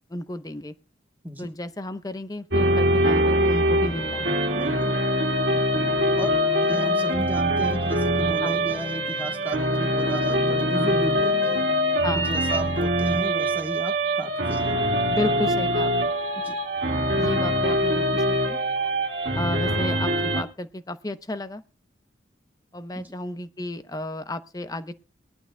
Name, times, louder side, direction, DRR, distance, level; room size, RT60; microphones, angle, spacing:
voice 1, 0.1-0.7 1.4-4.3 5.5-5.7 8.4-8.6 12.0-12.3 15.0-16.1 17.1-18.6 19.3-21.6 22.7-24.9, left 1 dB, 20° left, 11 dB, 0.7 m, -32 dB
sound 1, 2.5-20.4, equal, 75° right, 1.9 m, -23 dB
sound 2, 3.7-12.2, left 1 dB, 85° left, 2.1 m, -39 dB
voice 2, 4.5-4.9 6.1-6.4 6.6-11.7 12.2-14.8 16.4-16.6 22.9-23.1, equal, 10° right, 2 dB, 1.2 m, -34 dB
21.0 x 12.0 x 2.3 m, 0.35 s
head